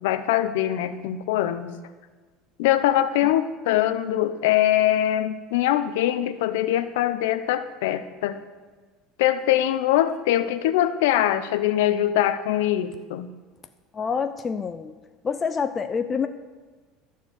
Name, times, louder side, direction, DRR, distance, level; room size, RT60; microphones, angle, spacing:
voice 1, 0.0-1.7 2.6-8.4 9.2-13.3, left 12 dB, 85° left, 11 dB, 0.7 m, -23 dB
voice 2, 13.9-15.0 15.2-16.3, left 6 dB, 25° left, 8 dB, 0.4 m, -27 dB
13.0 x 4.6 x 8.2 m, 1.4 s
supercardioid pair, 130°, 0 cm